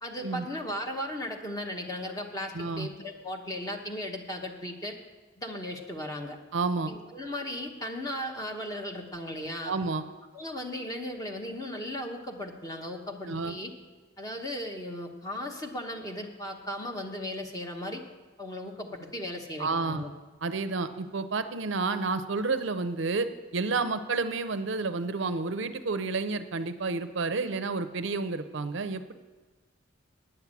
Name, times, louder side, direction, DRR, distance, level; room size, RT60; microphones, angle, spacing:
voice 1, 0.0-4.9 5.4-6.4 6.9-9.7 10.3-13.7 14.2-18.1 18.4-20.1, left 1 dB, 15° left, 2 dB, 1.1 m, -36 dB
voice 2, 2.5-2.9 6.5-6.9 9.6-10.0 13.3-13.5 19.6-20.0 20.4-29.1, right 3 dB, 60° right, 11 dB, 0.6 m, -30 dB
9.9 x 7.0 x 8.3 m, 1.3 s
head